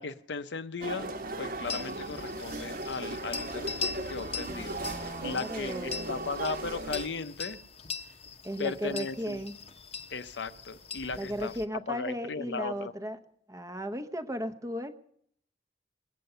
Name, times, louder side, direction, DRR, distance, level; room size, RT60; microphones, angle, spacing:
voice 1, 0.0-4.8 5.2-7.6 8.6-9.4 10.1-11.5 11.9-12.9, left 4 dB, 85° left, 11 dB, 0.7 m, -37 dB
sound 1, 0.8-7.1, right 2 dB, 55° right, 1.2 m, -37 dB
sound 2, 1.6-11.7, left 5 dB, 35° left, 0.8 m, -41 dB
voice 2, 4.5-6.3 8.4-9.5 11.2-13.2 13.5-15.0, equal, 20° right, 10 dB, 0.8 m, -36 dB
21.5 x 8.4 x 6.7 m, 0.67 s
head